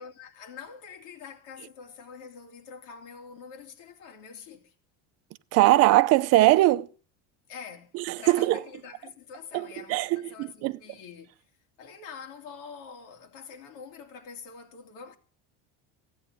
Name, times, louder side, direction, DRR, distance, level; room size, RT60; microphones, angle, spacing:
voice 1, 0.0-4.7 7.5-11.3 11.8-15.2, left 6 dB, 80° left, 3.0 m, -45 dB
voice 2, 5.5-6.9 7.9-8.6 9.5-10.8, right 17 dB, 45° right, 0.6 m, -21 dB
16.0 x 9.4 x 6.8 m
cardioid pair, 170°, 35 cm